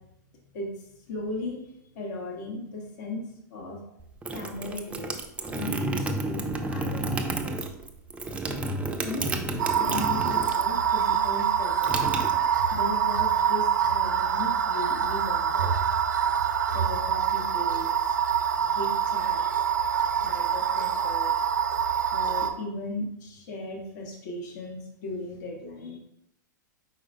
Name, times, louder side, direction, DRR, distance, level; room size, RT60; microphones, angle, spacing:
voice 1, 1.1-1.6 1.9-3.2 3.5-3.8 4.3-5.2 5.4-7.6 8.8-12.1 12.7-15.7 16.7-17.9 18.6-19.6 20.2-21.3 22.1-26.0, left 2 dB, 65° left, 0 dB, 1.1 m, -37 dB
sound 1, 4.0-10.8 11.1-12.9, right 2 dB, 10° right, 0.4 m, -31 dB
sound 2, 9.6-22.5, right 8 dB, 80° right, 0.6 m, -25 dB
4.6 x 4.2 x 2.6 m, 0.79 s
hypercardioid pair, 110°, 10 cm